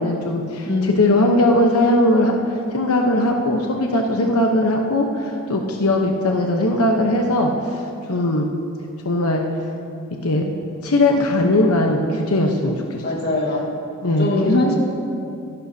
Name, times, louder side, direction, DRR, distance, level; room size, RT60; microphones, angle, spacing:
voice 1, 0.0-7.8 8.1-8.5 9.0-9.4 10.2-10.5 10.8-13.0 14.0-14.6, left 1 dB, 85° left, 1 dB, 1.0 m, -19 dB
voice 2, 0.6-1.0 13.0-13.7 14.2-14.8, left 2 dB, 45° left, 0 dB, 1.7 m, -21 dB
24.0 x 11.0 x 2.8 m, 2.5 s
head